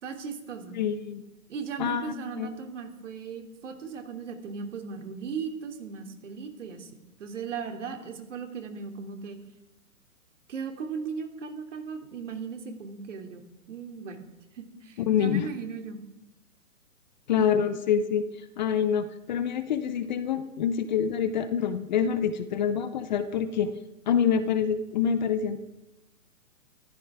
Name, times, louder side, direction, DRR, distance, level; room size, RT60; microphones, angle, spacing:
voice 1, 0.0-0.8 1.5-6.9 7.2-9.4 10.5-14.3 14.5-16.0 17.4-17.5, right 6 dB, 55° right, 4 dB, 2.9 m, -37 dB
voice 2, 0.7-1.2 1.8-2.5 15.0-15.5 17.3-18.2 18.6-23.7 24.1-25.6, left 8 dB, 30° left, 12 dB, 0.9 m, -26 dB
26.0 x 14.5 x 3.6 m, 0.97 s
hypercardioid pair, 140°, 44 cm